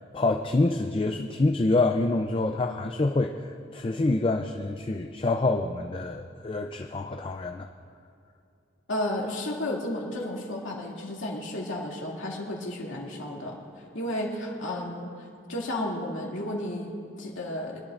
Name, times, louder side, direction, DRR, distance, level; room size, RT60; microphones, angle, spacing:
voice 1, 0.0-3.3 3.7-7.7, left 2 dB, 25° left, 5 dB, 0.4 m, -26 dB
voice 2, 8.9-13.6 13.9-15.1 15.5-17.8, left 1 dB, 90° left, -3 dB, 2.4 m, -32 dB
24.0 x 12.0 x 2.5 m, 2.6 s
head